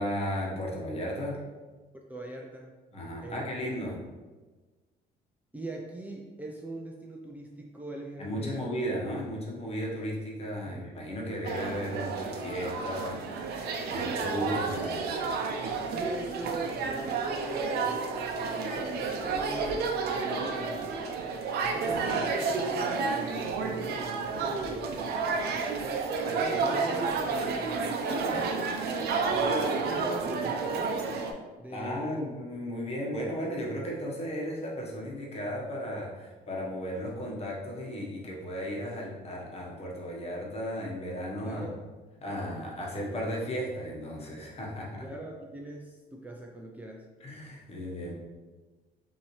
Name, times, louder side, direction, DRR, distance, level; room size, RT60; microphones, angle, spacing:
voice 1, 0.0-1.4 2.9-4.0 8.2-15.3 31.7-41.7 42.2-45.0 47.2-48.1, equal, 40° left, -3 dB, 1.2 m, -35 dB
voice 2, 2.1-2.7 3.2-3.5 5.5-8.7 10.7-10.9 14.0-14.3 15.9-18.0 18.7-21.2 21.6-28.6 29.3-31.0 31.6-32.2 41.4-41.8 45.0-47.1, right 1 dB, 10° right, -1 dB, 0.4 m, -42 dB
sound 1, 11.4-31.3, right 4 dB, 70° right, 0.6 m, -31 dB
5.4 x 2.8 x 3.1 m, 1.3 s
cardioid pair, 110°, 17 cm